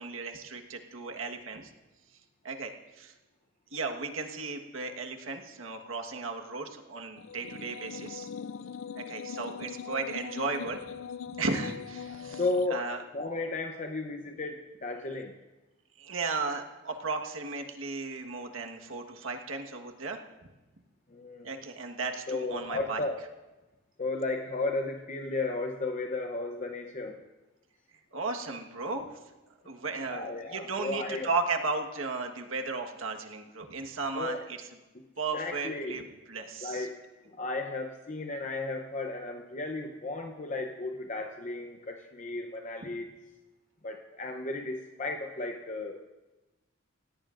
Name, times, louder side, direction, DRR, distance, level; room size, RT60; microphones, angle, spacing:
voice 1, 0.0-1.7 2.4-3.1 3.7-8.3 8.9-10.9 11.4-12.4 12.7-13.0 16.0-20.2 21.4-23.0 28.1-29.2 29.6-34.7 35.2-36.9, right 3 dB, 80° right, 3 dB, 1.4 m, -35 dB
sound 1, 7.2-12.7, left 7 dB, 75° left, 0.4 m, -41 dB
voice 2, 12.1-15.3 21.1-21.5 22.3-23.2 24.0-27.2 30.1-31.3 34.1-34.4 35.3-36.0 36.6-37.0 37.4-43.1 43.8-46.0, left 3 dB, 40° left, 4 dB, 0.8 m, -34 dB
27.0 x 17.0 x 2.6 m, 1.1 s
head